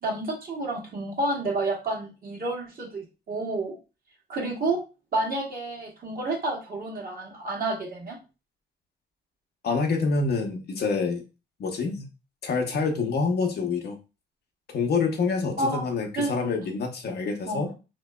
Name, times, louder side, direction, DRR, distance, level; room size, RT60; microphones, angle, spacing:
voice 1, 0.0-3.8 4.3-4.8 5.1-8.2 15.6-15.8 16.1-16.3 17.5-17.7, right 2 dB, 45° right, -1 dB, 1.4 m, -29 dB
voice 2, 9.6-11.2 11.6-12.1 12.4-14.0 14.7-17.7, left 4 dB, 55° left, 3 dB, 0.7 m, -26 dB
3.2 x 2.8 x 2.2 m, 0.30 s
cardioid pair, 90°, 20 cm